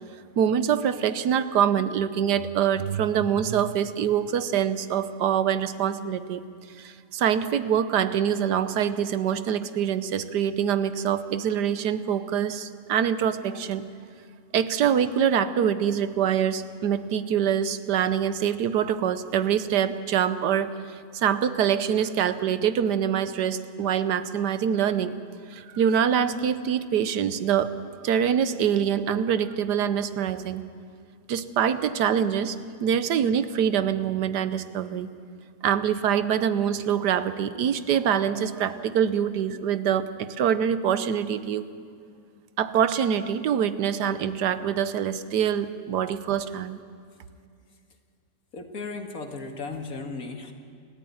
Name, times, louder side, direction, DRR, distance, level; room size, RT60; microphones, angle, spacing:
voice 1, 0.4-6.4 6.8-13.8 14.5-20.7 21.1-25.1 25.5-27.7 28.0-30.6 31.3-35.1 35.6-41.7 42.6-46.8, right 8 dB, 80° right, 13 dB, 1.4 m, -25 dB
voice 2, 48.5-50.5, left 3 dB, 60° left, 4 dB, 2.4 m, -35 dB
29.0 x 13.5 x 9.4 m, 2.3 s
omnidirectional pair, 1.8 m